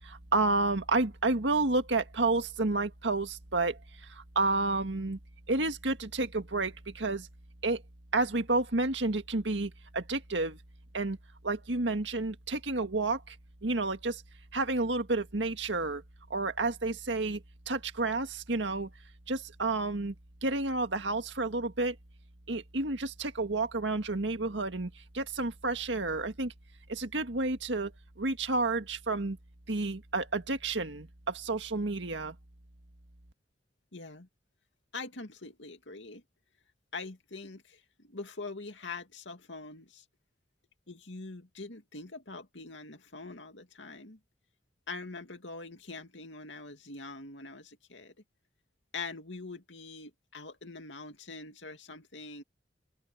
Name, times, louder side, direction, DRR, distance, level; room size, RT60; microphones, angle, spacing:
voice 1, 0.0-3.8 4.1-5.2 5.5-7.3 7.6-7.8 8.1-10.6 10.9-11.2 11.4-13.4 13.6-14.2 14.5-16.0 16.3-18.9 19.3-20.1 20.4-22.0 22.5-26.5 26.9-27.9 28.2-29.4 29.7-32.3, right 2 dB, 85° right, 1.8 m, -30 dB
voice 2, 33.9-34.3 34.9-36.2 36.9-40.0 40.9-44.2 44.9-48.1 48.9-52.4, left 3 dB, 85° left, 2.4 m, -43 dB
open air
head